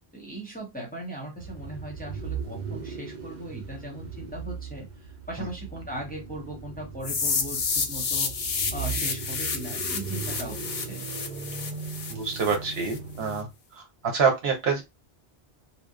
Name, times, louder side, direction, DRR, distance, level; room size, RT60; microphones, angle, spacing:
voice 1, 0.1-8.4 8.7-11.0, right 1 dB, 10° left, -1 dB, 0.7 m, -38 dB
sound 1, 1.4-13.5, right 5 dB, 55° right, 0.6 m, -38 dB
sound 2, 7.0-13.0, left 5 dB, 55° left, 0.7 m, -30 dB
voice 2, 12.1-13.5 13.7-14.8, right 5 dB, 75° right, 4 dB, 1.0 m, -26 dB
2.8 x 2.0 x 2.4 m, 0.21 s
omnidirectional pair, 1.1 m